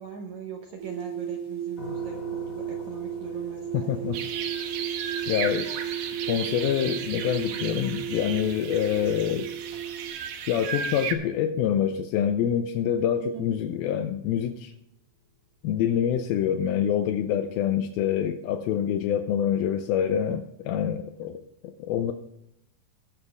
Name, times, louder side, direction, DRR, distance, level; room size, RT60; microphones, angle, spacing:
voice 1, 0.0-4.4 4.9-5.1 13.2-13.5, right 5 dB, 70° right, 2 dB, 1.8 m, -41 dB
sound 1, 0.8-10.1, right 9 dB, 45° right, 2.7 m, -35 dB
sound 2, 1.8-14.6, left 2 dB, 40° left, 1.2 m, -48 dB
voice 2, 3.7-4.2 5.3-5.7 6.3-9.5 10.5-14.7 15.6-22.1, left 9 dB, 80° left, 8 dB, 2.4 m, -26 dB
sound 3, 4.1-11.1, right 7 dB, 90° right, 3.2 m, -35 dB
20.0 x 7.1 x 3.5 m, 0.81 s
omnidirectional pair, 4.5 m